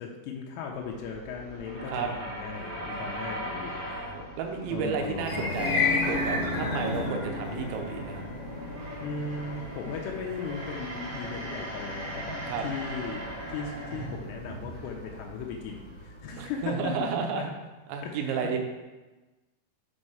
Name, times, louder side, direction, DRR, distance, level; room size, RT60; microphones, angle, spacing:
voice 1, 0.0-3.8 4.7-5.6 7.6-7.7 9.0-13.2 13.5-17.4 18.0-18.6, left 5 dB, 85° left, -1 dB, 2.8 m, -37 dB
sound 1, 0.7-17.0, right 1 dB, 60° right, 1.6 m, -40 dB
voice 2, 3.9-8.2 12.5-12.7 16.4-17.5 17.9-18.6, right 6 dB, 80° right, 3 dB, 2.1 m, -32 dB
sound 2, 5.2-15.5, left 3 dB, 55° left, 1.7 m, -33 dB
6.3 x 4.3 x 5.0 m, 1.1 s
omnidirectional pair, 5.1 m